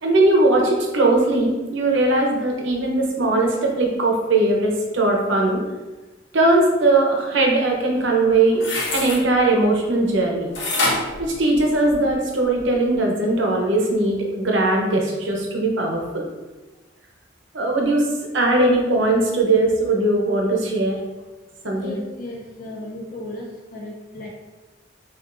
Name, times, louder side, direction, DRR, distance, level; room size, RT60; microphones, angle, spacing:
voice 1, 0.0-5.6 6.3-8.6 8.9-10.5 11.2-16.2 17.5-18.0 18.3-21.0 21.6-22.0, right 2 dB, 70° right, 0 dB, 0.8 m, -19 dB
sound 1, 8.5-9.2 10.5-12.1 12.6-12.7, left 2 dB, 60° left, 1.0 m, -25 dB
voice 2, 21.7-24.3, left 1 dB, 45° left, -1 dB, 0.4 m, -35 dB
6.2 x 2.5 x 2.5 m, 1.2 s
head